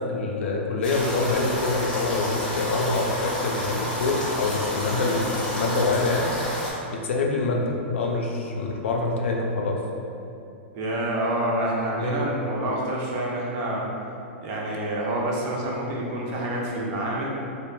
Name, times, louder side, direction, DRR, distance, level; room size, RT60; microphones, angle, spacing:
voice 1, 0.0-6.3 6.9-9.8 12.0-12.2, left 3 dB, 80° left, 0 dB, 0.4 m, -25 dB
sound 1, 0.8-6.7, equal, 10° left, 0.6 m, -30 dB
voice 2, 10.7-13.9 14.4-17.3, right 1 dB, 40° right, -3 dB, 0.5 m, -27 dB
2.2 x 2.1 x 3.1 m, 2.7 s
hypercardioid pair, 140°, 7 cm